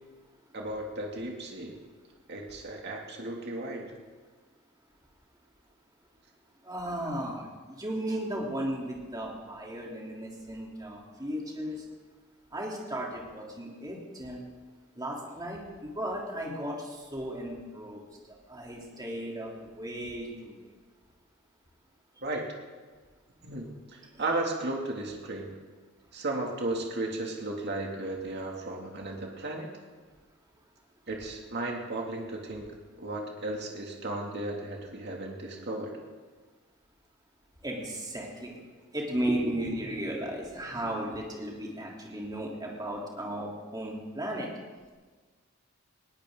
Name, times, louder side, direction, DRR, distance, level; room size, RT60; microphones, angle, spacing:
voice 1, 0.5-1.7 2.3-3.9 22.2-22.4 23.4-25.5 26.1-29.7 31.1-32.7 33.0-36.0, right 2 dB, 55° right, 0 dB, 2.5 m, -35 dB
voice 2, 6.6-11.8 12.5-14.4 14.9-20.7 24.1-24.3 37.6-38.6 38.9-44.5, right 1 dB, 20° right, -2 dB, 3.3 m, -35 dB
20.0 x 17.0 x 3.9 m, 1.4 s
head